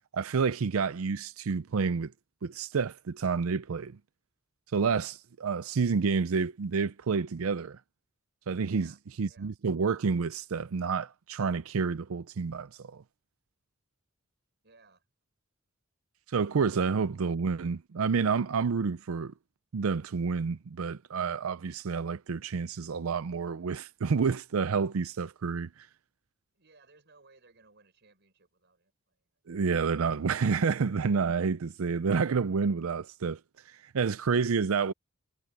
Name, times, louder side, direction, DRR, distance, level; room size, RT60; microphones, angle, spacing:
voice 1, 0.1-2.1 2.4-4.0 4.7-7.8 8.5-8.9 9.2-13.0 16.3-19.3 19.7-25.7 29.5-33.4 33.7-34.9, right 5 dB, 85° right, 0.5 m, -29 dB
voice 2, 8.6-9.0 9.2-9.5 14.6-15.0 26.5-29.2, right 3 dB, 55° right, 6.5 m, -61 dB
head